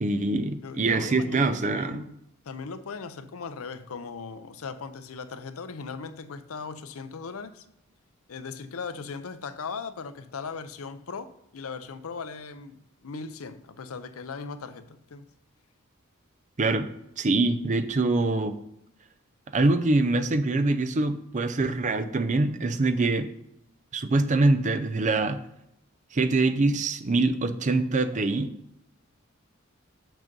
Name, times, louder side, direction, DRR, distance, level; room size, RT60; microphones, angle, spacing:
voice 1, 0.0-2.0 16.6-16.9 17.2-18.6 19.5-23.3 23.9-25.4 26.1-28.5, right 2 dB, 35° right, 0.5 m, -24 dB
voice 2, 0.6-2.2 2.4-7.7 8.3-15.3, left 5 dB, 70° left, 0.6 m, -38 dB
6.6 x 6.1 x 5.3 m
head